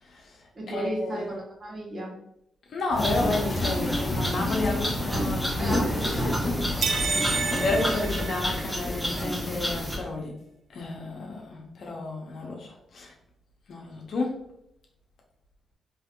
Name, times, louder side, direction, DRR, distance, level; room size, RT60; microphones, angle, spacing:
voice 1, 0.0-1.3 2.7-6.1 7.0-10.4 10.7-13.1 13.7-14.3, left 2 dB, 65° left, 0 dB, 0.7 m, -31 dB
voice 2, 0.5-2.2 5.6-6.7, right 1 dB, 45° right, -2 dB, 1.3 m, -35 dB
sound 1, 2.9-7.9, left 1 dB, 40° left, 1.1 m, -30 dB
sound 2, 3.0-10.0, equal, ahead, 0.9 m, -31 dB
sound 3, 6.8-9.0, right 4 dB, 65° right, 0.4 m, -29 dB
3.5 x 3.0 x 2.3 m, 0.78 s
supercardioid pair, 50°, 0 cm